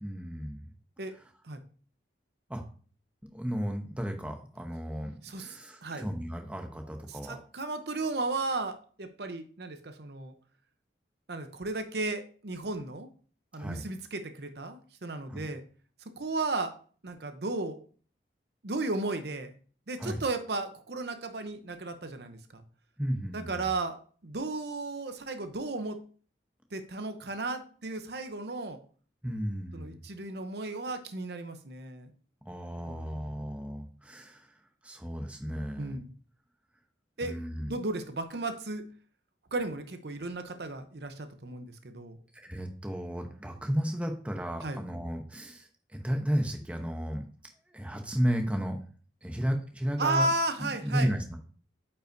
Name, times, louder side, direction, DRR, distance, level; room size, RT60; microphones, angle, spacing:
voice 1, 0.0-0.7 2.5-2.6 3.3-7.4 13.6-13.9 15.3-15.5 20.0-20.2 23.0-23.7 29.2-30.0 32.4-36.0 37.2-37.7 42.3-47.3 47.7-48.8 49.2-50.3 50.6-51.4, equal, 5° right, 3 dB, 0.8 m, -33 dB
voice 2, 5.2-5.5 5.8-6.0 7.1-10.3 11.3-13.1 13.5-15.6 16.2-16.7 17.0-17.8 18.6-19.5 19.9-22.6 23.3-24.0 24.2-26.0 26.7-28.8 29.7-32.1 32.9-33.5 35.8-36.1 37.2-37.4 37.7-38.9 39.5-42.2 44.6-44.8 50.0-51.1, right 2 dB, 65° right, 8 dB, 0.7 m, -34 dB
8.8 x 5.5 x 2.6 m, 0.42 s
head